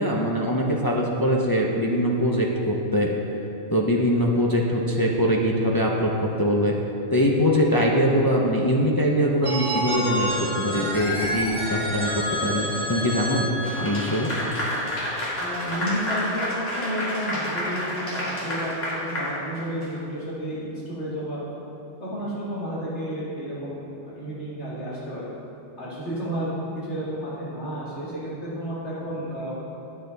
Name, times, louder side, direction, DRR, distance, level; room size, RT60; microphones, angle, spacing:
voice 1, 0.0-3.1 3.7-6.8 7.1-13.5 13.8-14.3, equal, 25° left, -2 dB, 0.6 m, -22 dB
Telephone, 9.4-15.2, equal, 5° left, 1.3 m, -29 dB
Clapping / Applause, 13.6-20.0, equal, 85° left, 2.4 m, -29 dB
voice 2, 15.4-21.4 22.0-25.3 25.8-26.6 26.8-29.5, equal, 65° left, -9 dB, 2.7 m, -31 dB
9.9 x 8.7 x 4.0 m, 2.9 s
omnidirectional pair, 1.2 m